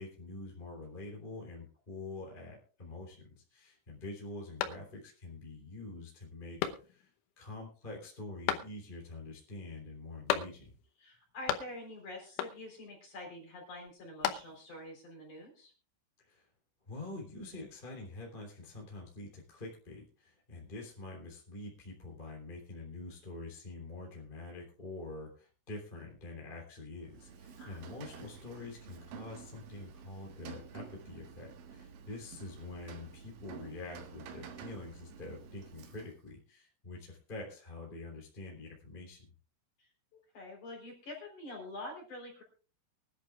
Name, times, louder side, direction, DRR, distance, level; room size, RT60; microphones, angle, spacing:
voice 1, 0.0-7.1 7.4-10.7 16.2-16.4 16.9-39.2, left 2 dB, 15° left, -1 dB, 2.7 m, -46 dB
sound 1, 4.6-5.3 5.7-5.8 6.6-7.2 8.5-9.1 10.3-10.9 11.1-12.0 12.4-12.9 13.9-14.8, left 11 dB, 85° left, 3.4 m, -36 dB
voice 2, 11.0-15.7 27.6-27.8 39.8-42.4, left 1 dB, 40° left, 0 dB, 4.9 m, -46 dB
Rain, 27.0-36.3, right 6 dB, 70° right, 3.6 m, -50 dB
24.0 x 11.0 x 2.4 m, 0.37 s
omnidirectional pair, 5.8 m